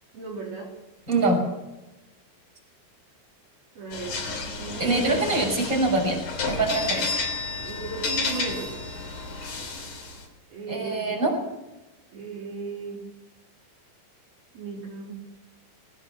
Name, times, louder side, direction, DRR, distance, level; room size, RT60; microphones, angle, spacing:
voice 1, 0.1-0.8 3.8-4.2 4.6-5.3 7.6-8.8 10.5-11.2 12.1-13.0 14.5-15.1, right 3 dB, 65° right, -2 dB, 5.8 m, -36 dB
voice 2, 1.1-1.4 4.8-6.2 6.5-7.1 10.7-11.3, right 2 dB, 20° right, 0 dB, 6.5 m, -24 dB
sound 1, 3.9-10.2, left 3 dB, 50° left, 4.6 m, -31 dB
21.0 x 18.0 x 7.3 m, 1.0 s
omnidirectional pair, 4.7 m